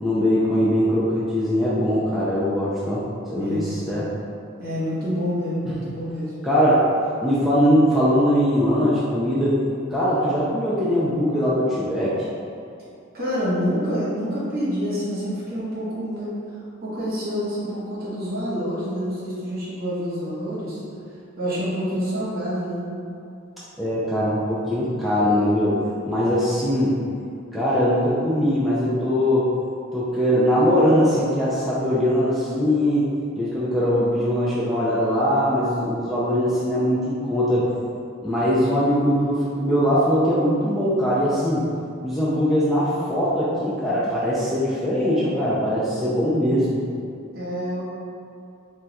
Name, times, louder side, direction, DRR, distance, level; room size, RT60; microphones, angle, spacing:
voice 1, 0.0-3.0 3.3-4.1 6.4-6.8 7.2-9.6 9.9-12.2 23.8-25.8 26.1-27.0 27.5-29.5 29.9-33.1 33.4-37.7 38.2-41.6 42.0-46.8, equal, ahead, -11 dB, 0.3 m, -21 dB
voice 2, 3.3-3.8 4.6-6.4 13.1-16.3 16.8-20.8 21.4-22.9 47.3-47.8, equal, 50° right, -9 dB, 1.0 m, -27 dB
2.3 x 2.2 x 3.9 m, 2.5 s
head